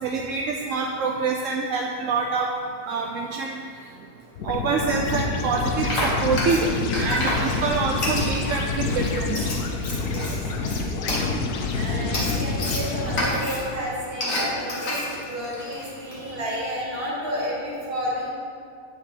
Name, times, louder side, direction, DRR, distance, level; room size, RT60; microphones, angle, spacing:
voice 1, 0.0-2.5 2.9-3.6 4.4-6.7 7.0-9.5, right 4 dB, 65° right, 1 dB, 0.9 m, -26 dB
sound 1, 4.4-13.8, left 3 dB, 80° left, 1.2 m, -28 dB
Frying (food), 5.4-16.3, left 1 dB, 60° left, 1.9 m, -30 dB
voice 2, 10.6-11.0 11.7-18.3, equal, 40° right, -5 dB, 2.1 m, -31 dB
8.9 x 5.6 x 5.0 m, 2.4 s
omnidirectional pair, 1.6 m